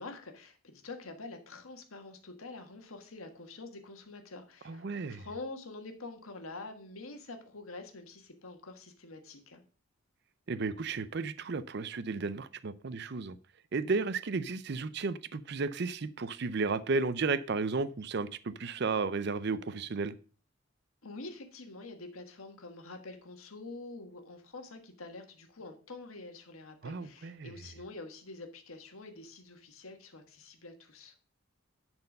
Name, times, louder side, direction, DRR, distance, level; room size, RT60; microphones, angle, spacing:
voice 1, 0.0-9.6 21.0-31.1, left 3 dB, 85° left, 1.5 m, -46 dB
voice 2, 4.7-5.2 10.5-13.4 13.7-20.1 26.8-27.5, right 4 dB, 50° right, 0.5 m, -33 dB
10.5 x 4.4 x 5.3 m
head